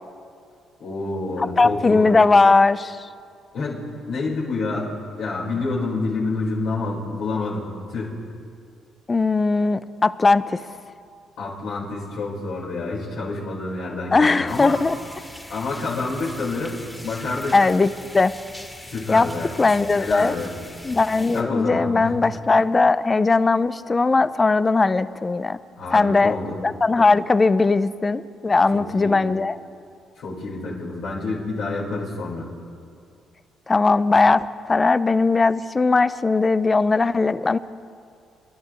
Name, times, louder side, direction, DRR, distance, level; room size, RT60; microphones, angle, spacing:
voice 1, 0.8-2.1 3.5-4.9 5.2-8.1 11.4-14.8 15.5-17.6 18.8-19.5 20.0-20.5 21.3-22.1 25.8-26.5 28.7-29.2 30.2-32.5, left 3 dB, 70° left, -6 dB, 4.5 m, -28 dB
voice 2, 1.6-3.1 9.1-10.6 14.1-15.0 17.5-17.9 18.1-18.3 19.1-19.3 19.6-20.3 20.8-25.6 25.9-26.4 26.6-29.6 33.7-37.6, left 3 dB, 30° left, 14 dB, 0.6 m, -19 dB
sound 1, 14.5-21.4, left 1 dB, 10° left, 2.2 m, -41 dB
27.0 x 11.5 x 3.1 m, 2.3 s
supercardioid pair, 55°, 0 cm